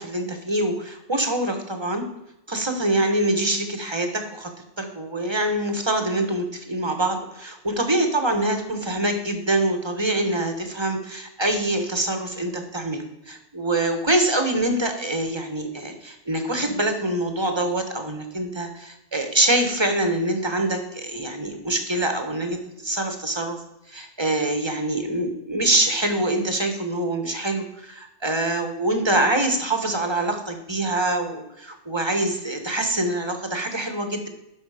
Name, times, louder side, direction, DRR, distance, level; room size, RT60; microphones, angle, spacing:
voice 1, 0.0-2.0 2.5-4.5 4.8-23.6 23.9-34.3, right 1 dB, 25° right, 5 dB, 1.2 m, -25 dB
11.5 x 5.3 x 4.9 m, 0.90 s
omnidirectional pair, 1.2 m